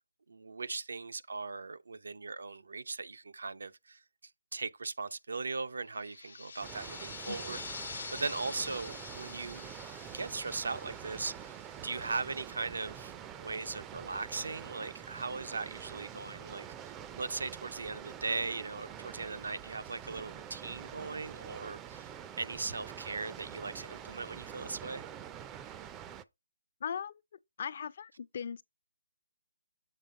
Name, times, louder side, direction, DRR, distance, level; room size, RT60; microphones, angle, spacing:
voice 1, 0.3-4.0 4.5-9.7 10.1-22.1 22.4-25.0, right 4 dB, 80° right, 0.6 m, -39 dB
sound 1, 5.9-12.2, left 5 dB, 70° left, 0.8 m, -46 dB
Water, 6.6-26.2, right 9 dB, 15° right, 0.4 m, -46 dB
voice 2, 26.8-27.1 27.6-28.6, left 7 dB, 50° left, 0.4 m, -38 dB
7.4 x 3.4 x 5.2 m
hypercardioid pair, 155°, 0 cm